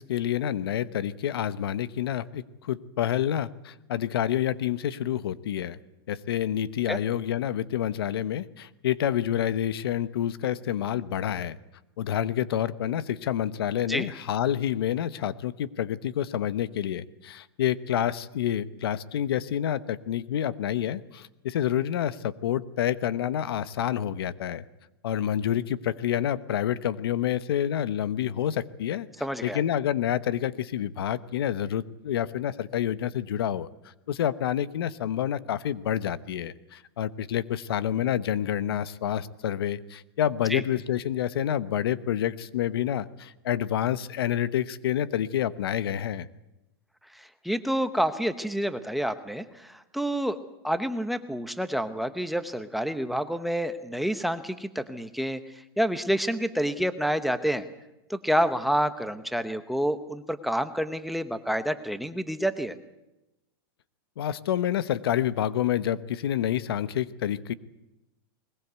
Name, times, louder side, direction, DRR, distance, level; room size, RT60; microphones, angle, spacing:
voice 1, 0.0-5.8 6.1-11.6 12.0-24.6 25.0-29.1 29.4-46.3 64.2-67.5, left 10 dB, 80° left, 16 dB, 1.0 m, -28 dB
voice 2, 29.2-29.6 40.5-40.6 47.1-50.4 50.6-55.4 55.8-57.7 58.1-62.8, equal, ahead, 9 dB, 0.9 m, -28 dB
21.0 x 20.5 x 8.2 m, 0.93 s
supercardioid pair, 155°, 13 cm